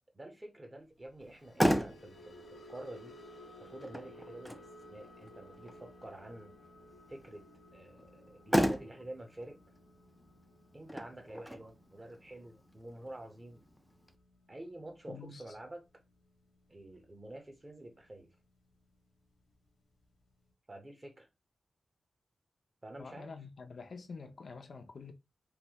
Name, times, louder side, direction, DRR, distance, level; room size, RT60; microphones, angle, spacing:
voice 1, 0.1-3.2 3.6-6.5 7.1-7.4 7.7-9.6 10.7-13.6 14.5-15.8 16.7-18.3 20.7-21.3 22.8-23.3, right 1 dB, 25° right, 0.9 m, -48 dB
sound 1, 1.2-17.6 17.9-18.2 18.6-18.8, left 1 dB, 80° left, 1.0 m, -57 dB
Motor vehicle (road), 1.2-14.2, equal, ahead, 0.4 m, -37 dB
voice 2, 15.1-15.4 23.0-25.1, left 4 dB, 60° left, 0.5 m, -47 dB
3.3 x 2.6 x 2.9 m
wide cardioid pair, 100°, 0 cm